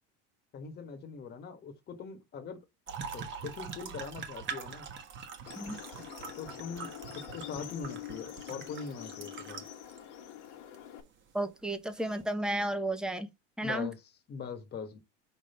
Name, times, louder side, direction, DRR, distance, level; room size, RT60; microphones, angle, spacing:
voice 1, 0.5-2.6 3.1-4.9 6.3-9.6 13.6-14.0 14.3-15.0, left 6 dB, 30° left, 1.5 m, -42 dB
sound 1, 2.9-10.0 10.7-10.8 12.0-12.2, right 6 dB, 35° right, 1.3 m, -43 dB
sound 2, 5.5-11.0, left 10 dB, 80° left, 1.6 m, -45 dB
voice 2, 11.3-13.3 13.6-13.9, right 1 dB, ahead, 0.8 m, -33 dB
5.0 x 3.6 x 5.5 m
supercardioid pair, 130°, 34 cm